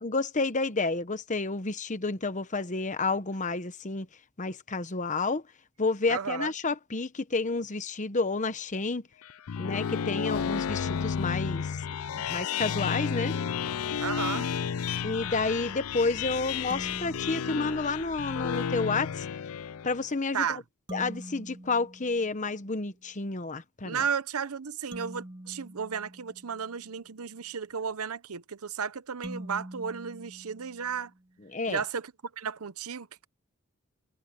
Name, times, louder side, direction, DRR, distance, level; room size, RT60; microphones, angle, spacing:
voice 1, 0.0-4.1 4.4-5.4 5.8-9.0 9.6-11.8 12.3-13.3 15.0-19.3 19.8-20.5 20.9-24.0 31.5-31.8, left 3 dB, 35° left, 1.1 m, -30 dB
voice 2, 6.1-6.5 14.0-14.5 20.3-20.6 23.8-31.1 31.7-33.3, right 6 dB, 90° right, 0.8 m, -34 dB
sound 1, 9.2-20.1, left 7 dB, 85° left, 0.5 m, -32 dB
sound 2, 16.7-18.4 20.9-22.9 24.9-27.0 29.2-31.3, right 1 dB, 25° right, 3.4 m, -45 dB
head